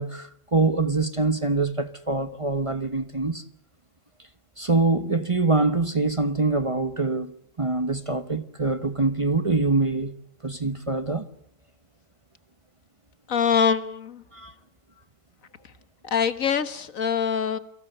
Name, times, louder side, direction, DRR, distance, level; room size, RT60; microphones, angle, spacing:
voice 1, 0.0-3.4 4.6-7.3 7.6-10.1 10.4-11.3 14.3-14.5, right 3 dB, 25° right, 1.0 m, -24 dB
voice 2, 13.3-14.2 16.0-17.6, left 7 dB, 70° left, 1.8 m, -24 dB
29.5 x 23.5 x 6.9 m
omnidirectional pair, 1.4 m